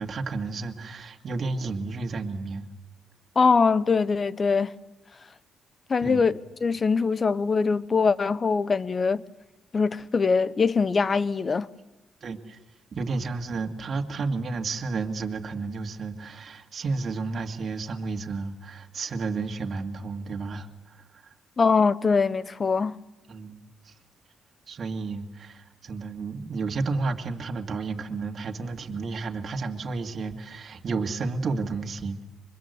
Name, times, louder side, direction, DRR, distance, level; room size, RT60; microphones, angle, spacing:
voice 1, 0.0-2.7 6.0-6.3 12.2-12.6 12.9-21.3 23.3-23.6 24.7-32.2, right 4 dB, 50° right, 2.2 m, -32 dB
voice 2, 3.4-4.7 5.9-6.3 6.6-9.2 9.7-11.7 21.6-23.0, left 5 dB, 35° left, 0.9 m, -22 dB
24.5 x 22.0 x 8.2 m
cardioid pair, 90°, 0 cm